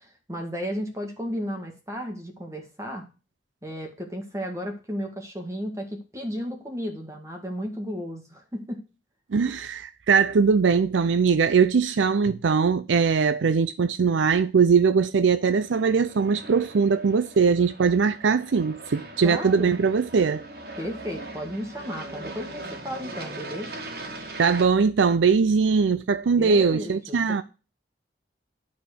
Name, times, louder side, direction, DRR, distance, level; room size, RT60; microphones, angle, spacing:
voice 1, 0.0-3.0 3.6-8.8 19.2-19.7 20.8-23.7 26.3-27.4, equal, 15° right, 1.7 m, -34 dB
voice 2, 9.3-20.4 24.4-27.4, right 5 dB, 90° right, 0.5 m, -21 dB
Aircraft, 15.4-24.6, right 2 dB, 55° right, 1.9 m, -40 dB
10.5 x 4.2 x 6.6 m
head